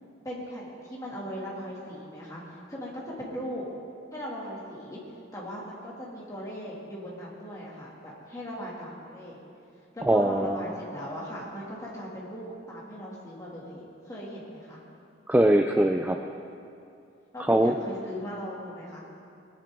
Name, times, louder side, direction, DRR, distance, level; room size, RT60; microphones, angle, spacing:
voice 1, 0.2-3.6 4.1-5.0 5.3-9.5 9.9-14.8 17.3-19.0, equal, 15° left, -6 dB, 2.6 m, -38 dB
voice 2, 10.1-10.6 15.3-16.2 17.5-17.7, right 1 dB, 10° right, 4 dB, 0.3 m, -21 dB
20.0 x 10.5 x 3.8 m, 2.6 s
head